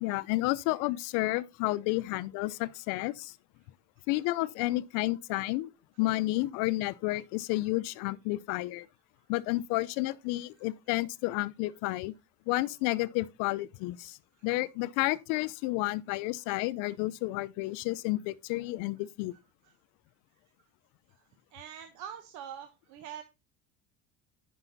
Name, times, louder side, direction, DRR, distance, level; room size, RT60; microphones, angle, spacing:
voice 1, 0.0-3.3 4.1-5.7 6.0-8.9 9.3-12.1 12.5-14.2 14.4-19.3, left 19 dB, 80° left, 0.6 m, -31 dB
voice 2, 21.5-23.2, right 9 dB, 70° right, 1.1 m, -44 dB
9.8 x 5.6 x 4.0 m
cardioid pair, 110°, 31 cm